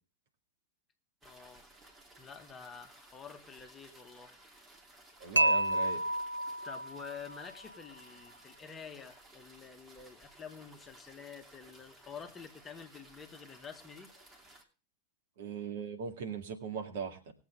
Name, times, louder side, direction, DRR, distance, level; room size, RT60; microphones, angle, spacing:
voice 1, 1.2-1.7 2.2-4.4 6.6-14.1, left 6 dB, 20° left, 1.6 m, -49 dB
sound 1, 1.2-14.6, right 1 dB, 20° right, 2.8 m, -58 dB
voice 2, 5.2-6.0 15.4-17.3, right 6 dB, 55° right, 2.1 m, -39 dB
Dishes pots and pans / Chink clink, 5.4-7.5, right 1 dB, 85° right, 0.6 m, -30 dB
20.5 x 8.0 x 3.5 m
figure-of-eight pair, 90°, 0 cm